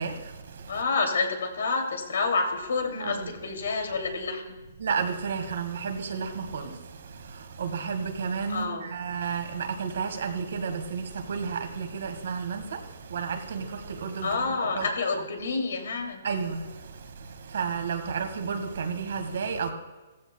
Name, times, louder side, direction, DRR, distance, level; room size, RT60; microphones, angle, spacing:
voice 1, 0.0-0.8 3.0-3.3 4.8-14.9 16.2-19.7, right 6 dB, 65° right, 1.8 m, -32 dB
voice 2, 0.7-4.6 8.5-8.9 14.2-16.2, left 4 dB, 85° left, 2.7 m, -28 dB
17.0 x 15.0 x 2.3 m
hypercardioid pair, 170°, 0 cm